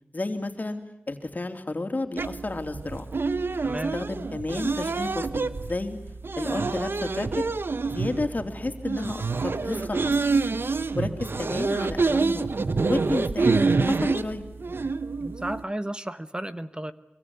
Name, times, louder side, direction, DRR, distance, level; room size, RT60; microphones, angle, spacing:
voice 1, 0.1-3.1 3.9-6.0 6.4-7.5 7.9-10.4 11.0-12.5 12.8-14.5, left 2 dB, 45° left, 6 dB, 3.3 m, -31 dB
sound 1, 2.2-15.6, right 4 dB, 70° right, 1.2 m, -27 dB
voice 2, 3.6-3.9 10.9-11.2 15.2-16.9, right 1 dB, 25° right, 13 dB, 1.2 m, -33 dB
24.5 x 24.0 x 9.6 m, 0.83 s
cardioid pair, 40°, 4 cm